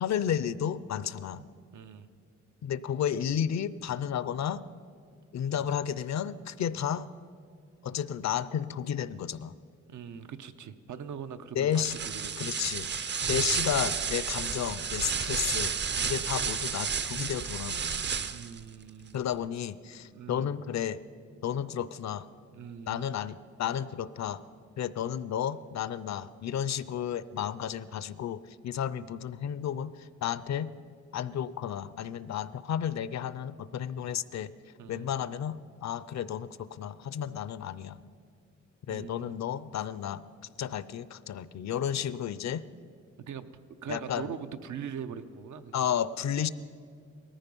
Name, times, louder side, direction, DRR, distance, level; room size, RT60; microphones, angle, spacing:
voice 1, 0.0-1.4 2.6-4.6 5.3-7.1 7.8-9.5 11.6-11.9 12.4-12.9 13.2-18.1 19.1-21.0 21.4-22.3 22.9-24.4 24.8-30.7 31.1-34.5 34.9-38.0 38.9-40.2 40.6-42.6 43.9-44.3 45.7-46.5, left 9 dB, 65° left, 16 dB, 0.5 m, -32 dB
voice 2, 1.3-2.1 5.5-5.8 9.9-12.6 13.6-13.8 16.0-16.2 18.3-19.2 20.0-20.6 22.5-23.1 29.0-29.1 34.8-35.1 38.9-39.3 43.3-43.5 43.8-45.9, right 7 dB, 85° right, 10 dB, 0.8 m, -42 dB
sound 1, 11.7-18.6, right 6 dB, 40° right, 0.5 m, -31 dB
19.0 x 14.0 x 5.3 m, 2.2 s
wide cardioid pair, 175°, 29 cm